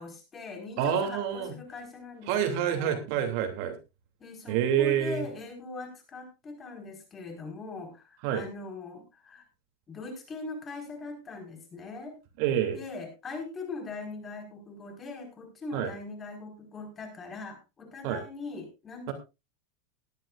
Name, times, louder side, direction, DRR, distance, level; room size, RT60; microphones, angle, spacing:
voice 1, 0.0-3.0 4.2-9.4 9.9-12.2 12.7-19.1, left 3 dB, 25° left, 3 dB, 5.0 m, -41 dB
voice 2, 0.8-1.5 2.3-3.8 4.5-5.2 8.2-8.4 12.4-12.8 15.7-15.9 18.0-18.2 19.1-19.2, right 9 dB, 60° right, 6 dB, 2.8 m, -27 dB
19.5 x 11.0 x 2.5 m, 0.26 s
supercardioid pair, 130°, 0 cm